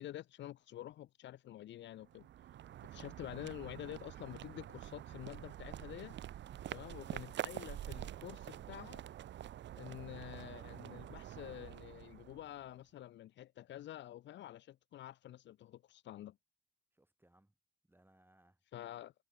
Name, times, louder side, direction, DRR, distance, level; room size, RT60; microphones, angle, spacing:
voice 1, 0.0-2.3 2.9-6.2 6.7-9.0 9.7-16.4 18.7-19.1, left 13 dB, 65° left, 0.8 m, -48 dB
sound 1, 2.0-12.7, right 12 dB, 65° right, 1.2 m, -47 dB
voice 2, 16.9-17.6 17.8-18.6, right 1 dB, 10° right, 6.8 m, -69 dB
hypercardioid pair, 45°, 20 cm